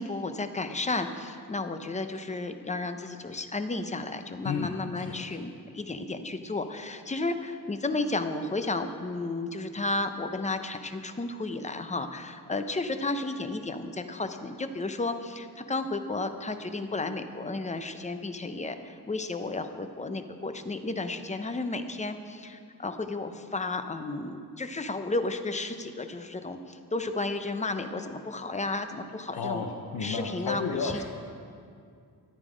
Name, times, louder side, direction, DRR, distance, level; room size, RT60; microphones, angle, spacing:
voice 1, 0.0-29.7 30.0-31.0, left 2 dB, 20° left, 8 dB, 0.6 m, -33 dB
voice 2, 4.4-5.2 29.3-31.0, left 5 dB, 75° left, 3 dB, 0.9 m, -32 dB
13.5 x 11.0 x 5.0 m, 2.3 s
wide cardioid pair, 170°, 39 cm